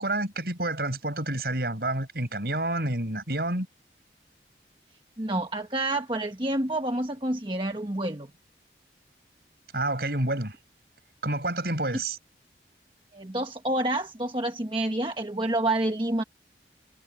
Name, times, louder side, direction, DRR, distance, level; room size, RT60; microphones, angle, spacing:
voice 1, 0.0-3.7 9.7-10.5 11.2-12.2, right 2 dB, 60° right, 6.8 m, -29 dB
voice 2, 5.2-8.3 13.1-16.2, right 1 dB, 30° right, 1.3 m, -28 dB
head